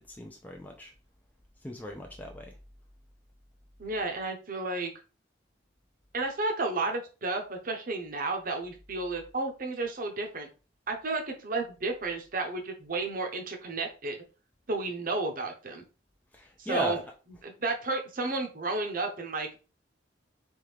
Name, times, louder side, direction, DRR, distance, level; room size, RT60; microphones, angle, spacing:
voice 1, 0.1-0.9 1.6-2.5 16.3-17.0, equal, 10° left, 1 dB, 0.4 m, -36 dB
voice 2, 3.8-4.9 6.1-10.5 10.9-14.2 14.7-15.8 16.6-17.0 17.4-19.6, right 3 dB, 45° right, 4 dB, 0.8 m, -32 dB
3.6 x 3.3 x 3.2 m, 0.34 s
head